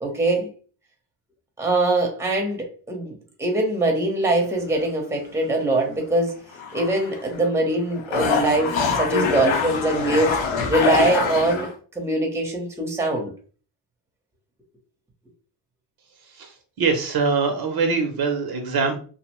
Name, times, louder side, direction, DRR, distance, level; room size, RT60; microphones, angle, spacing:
voice 1, 0.0-0.5 1.6-3.1 3.4-6.3 6.7-11.7 11.9-13.3, right 2 dB, 5° right, 1 dB, 0.7 m, -23 dB
sound 1, 4.2-4.9 5.4-5.5 6.5-7.5 7.8-11.7, left 5 dB, 70° left, 0.7 m, -25 dB
voice 2, 16.3-19.0, right 4 dB, 50° right, 4 dB, 0.6 m, -23 dB
2.6 x 2.0 x 2.9 m, 0.40 s
cardioid pair, 110°, 49 cm